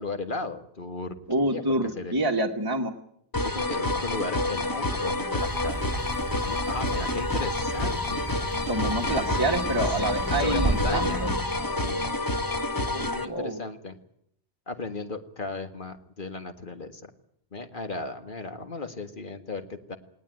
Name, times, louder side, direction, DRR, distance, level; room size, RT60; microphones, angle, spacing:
voice 1, 0.0-2.2 3.4-5.8 6.5-8.3 10.4-11.3 11.8-12.4 12.9-14.0 14.7-17.1 17.5-20.0, left 3 dB, 50° left, 7 dB, 1.9 m, -35 dB
voice 2, 1.3-2.9 8.7-11.3 13.2-13.6, right 1 dB, 20° right, 1 dB, 1.5 m, -27 dB
sound 1, 3.3-13.2, left 2 dB, 20° left, 1.2 m, -28 dB
sound 2, 5.4-11.8, right 2 dB, ahead, 3.6 m, -33 dB
19.5 x 18.5 x 9.2 m, 0.70 s
omnidirectional pair, 1.1 m